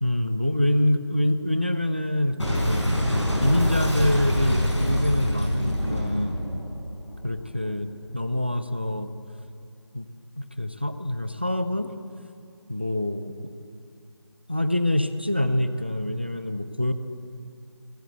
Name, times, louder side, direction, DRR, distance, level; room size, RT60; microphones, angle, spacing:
voice 1, 0.0-2.8 3.4-6.5 7.2-9.1 9.9-10.1 10.4-11.9 12.7-13.3 14.5-16.9, left 1 dB, 25° right, 11 dB, 0.4 m, -25 dB
Boom, 2.4-7.6, equal, 85° left, 4.5 m, -25 dB
16.0 x 8.6 x 8.0 m, 2.4 s
figure-of-eight pair, 165°, 15 cm